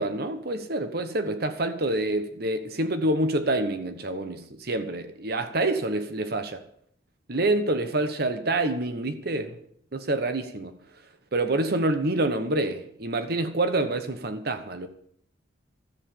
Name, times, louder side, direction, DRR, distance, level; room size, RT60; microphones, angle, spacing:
voice 1, 0.0-6.6 7.3-9.6 9.9-10.8 11.3-14.9, right 2 dB, 55° right, 1.1 m, -27 dB
13.0 x 7.4 x 8.9 m
head